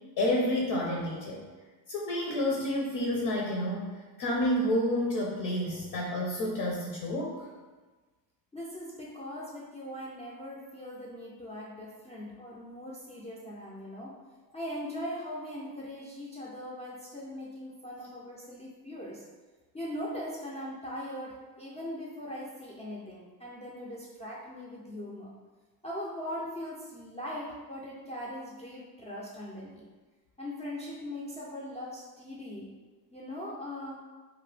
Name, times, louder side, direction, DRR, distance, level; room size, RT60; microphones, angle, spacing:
voice 1, 0.2-1.4 1.9-7.5, left 1 dB, 60° left, -2 dB, 0.6 m, -29 dB
voice 2, 8.5-14.1 14.5-19.2 19.7-25.3 25.8-29.9 30.4-32.7 33.1-34.0, left 1 dB, 15° left, -7 dB, 0.4 m, -40 dB
2.8 x 2.1 x 3.2 m, 1.3 s
cardioid pair, 110°, 43 cm